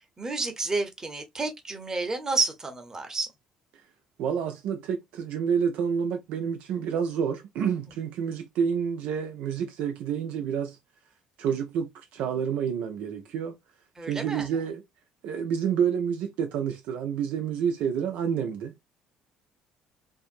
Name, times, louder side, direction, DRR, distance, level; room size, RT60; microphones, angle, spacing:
voice 1, 0.2-3.3 14.0-14.5, right 3 dB, 20° right, 0.8 m, -30 dB
voice 2, 4.2-10.8 11.4-13.6 14.0-14.8 15.2-18.7, right 7 dB, 60° right, 0.3 m, -29 dB
2.6 x 2.4 x 2.4 m
figure-of-eight pair, 50°, 3 cm